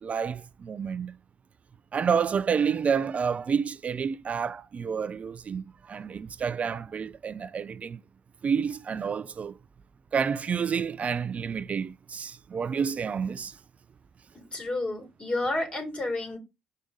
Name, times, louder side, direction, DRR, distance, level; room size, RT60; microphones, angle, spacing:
voice 1, 0.0-1.1 1.9-8.0 8.4-9.6 10.1-13.6, right 6 dB, 45° right, 0.4 m, -29 dB
voice 2, 14.5-16.4, left 2 dB, 35° left, 3.6 m, -30 dB
5.3 x 5.0 x 5.1 m
hypercardioid pair, 50°, 3 cm